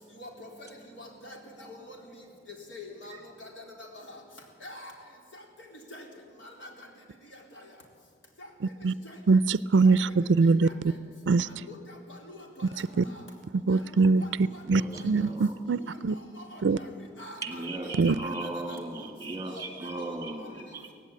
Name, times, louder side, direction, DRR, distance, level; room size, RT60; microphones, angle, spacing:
voice 1, 1.0-1.4 1.7-2.0 2.7-4.2 4.6-4.9 5.9-6.0 6.6-6.7 9.8-9.9 10.4-10.7 11.5-11.8 12.1-12.4 13.7-13.8 14.2-14.3 14.7-15.0 16.5-16.9 17.2-17.9 18.4-18.8 19.5-19.6, left 1 dB, 80° left, 1 dB, 4.0 m, -45 dB
voice 2, 9.3-10.7 11.3-11.5 13.0-13.1 13.7-14.2 14.7-15.8 16.0-16.1 16.6-16.8 18.0-18.2, right 4 dB, 70° right, 18 dB, 0.4 m, -22 dB
voice 3, 14.7-15.6 17.4-20.9, right 2 dB, 20° right, 4 dB, 2.1 m, -37 dB
17.5 x 16.0 x 9.9 m, 2.1 s
head